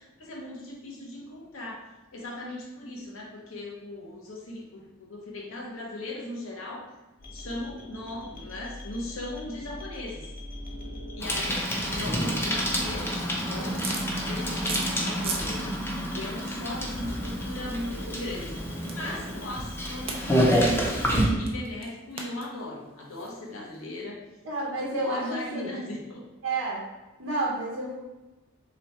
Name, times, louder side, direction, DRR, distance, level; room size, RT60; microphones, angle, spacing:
voice 1, 0.0-1.8 2.1-6.9 7.3-10.3 11.1-13.9 14.3-18.6 18.9-24.2 25.0-26.2, left 1 dB, 90° left, -2 dB, 1.0 m, -38 dB
sound 1, 7.2-21.4, left 1 dB, 45° left, 0.8 m, -42 dB
Bicycle, 11.2-21.3, equal, 10° left, 0.7 m, -28 dB
sound 2, 13.6-15.5 15.8-24.0, right 4 dB, 30° right, 0.5 m, -40 dB
voice 2, 24.4-25.7 26.4-26.8 27.2-27.9, right 2 dB, 75° right, -4 dB, 0.8 m, -30 dB
3.3 x 3.1 x 4.1 m, 1.1 s
head